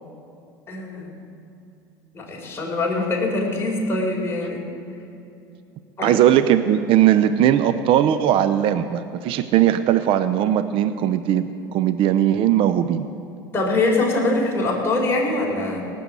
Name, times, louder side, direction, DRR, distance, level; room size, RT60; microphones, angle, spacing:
voice 1, 0.7-1.1 2.1-4.7 6.0-6.2 13.5-15.8, left 2 dB, 20° left, -3 dB, 4.4 m, -23 dB
voice 2, 6.0-13.1, right 11 dB, 50° right, 11 dB, 0.7 m, -19 dB
18.0 x 7.0 x 8.1 m, 2.6 s
supercardioid pair, 95°, 11 cm